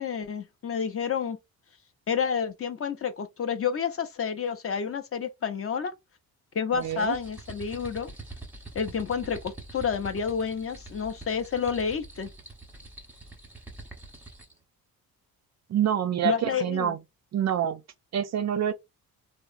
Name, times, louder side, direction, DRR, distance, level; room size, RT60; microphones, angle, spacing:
voice 1, 0.0-1.4 2.1-5.9 6.5-8.1 8.7-12.3 16.2-17.0, left 7 dB, 40° left, 0.5 m, -29 dB
sound 1, 6.7-14.6, right 2 dB, 5° right, 0.8 m, -45 dB
voice 2, 6.7-7.2 15.7-17.0 17.3-17.8 18.1-18.7, right 10 dB, 45° right, 0.4 m, -26 dB
2.8 x 2.0 x 2.4 m
cardioid pair, 80°, 37 cm